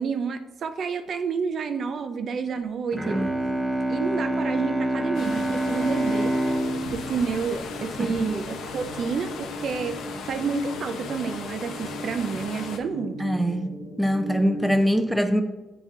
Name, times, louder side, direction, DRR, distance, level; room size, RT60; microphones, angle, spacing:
voice 1, 0.0-3.2 3.9-6.4 6.9-10.0 10.3-13.2, right 5 dB, 55° right, 8 dB, 0.5 m, -29 dB
Bowed string instrument, 2.9-8.5, right 1 dB, 15° right, 0.9 m, -27 dB
sound 1, 5.0-14.7, right 1 dB, 65° left, 1.6 m, -39 dB
sound 2, 5.1-12.8, left 5 dB, 80° left, 0.7 m, -37 dB
voice 2, 8.0-8.3 13.2-13.7 14.0-15.4, equal, ahead, 6 dB, 0.5 m, -23 dB
7.8 x 3.9 x 3.6 m, 1.1 s
cardioid pair, 90°, 0 cm